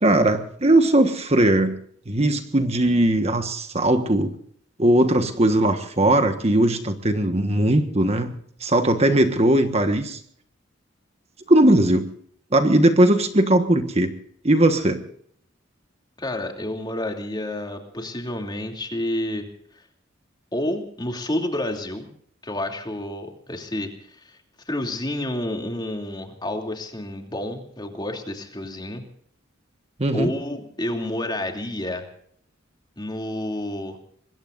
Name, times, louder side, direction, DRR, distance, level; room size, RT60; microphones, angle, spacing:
voice 1, 0.0-1.7 2.1-4.3 4.8-10.2 11.5-12.0 12.5-14.1 14.4-15.0 30.0-30.3, right 1 dB, 35° right, 7 dB, 1.4 m, -19 dB
voice 2, 16.2-19.5 20.5-22.1 22.4-24.4 24.7-29.0 30.1-32.1 33.0-34.0, left 1 dB, 20° left, 3 dB, 2.9 m, -29 dB
25.5 x 21.5 x 2.6 m, 0.63 s
head